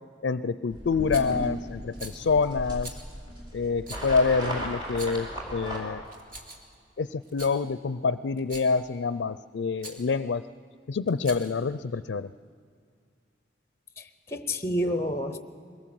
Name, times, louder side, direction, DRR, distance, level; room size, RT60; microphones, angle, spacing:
voice 1, 0.2-3.0 3.5-6.0 7.0-10.4 10.9-12.3, left 4 dB, 85° left, 14 dB, 0.4 m, -27 dB
sound 1, 0.7-5.8, equal, 25° right, 4.2 m, -36 dB
Rattle, 1.1-1.4 1.9-2.2 2.8-3.0 3.8-4.1 4.8-5.3 6.1-6.7 7.2-7.6 8.4-8.8 9.8-10.0 11.1-11.6, right 2 dB, 50° right, 2.3 m, -43 dB
voice 2, 14.0-15.4, equal, 15° left, 10 dB, 0.7 m, -29 dB
22.0 x 18.0 x 7.7 m, 2.2 s
head